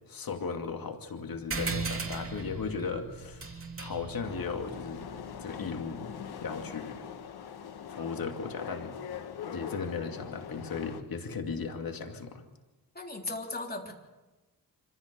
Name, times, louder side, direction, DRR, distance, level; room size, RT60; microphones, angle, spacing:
voice 1, 0.1-5.0 5.4-6.1 6.4-7.0 8.0-9.2 9.5-12.4, left 5 dB, 65° left, 4 dB, 2.5 m, -36 dB
sound 1, 1.5-6.4, right 4 dB, 35° right, 2.8 m, -38 dB
sound 2, 4.2-11.0, left 7 dB, 85° left, 1.4 m, -42 dB
voice 2, 13.0-13.9, left 2 dB, 25° left, 1 dB, 3.6 m, -37 dB
25.5 x 15.5 x 6.9 m, 1.1 s
cardioid pair, 95°, 37 cm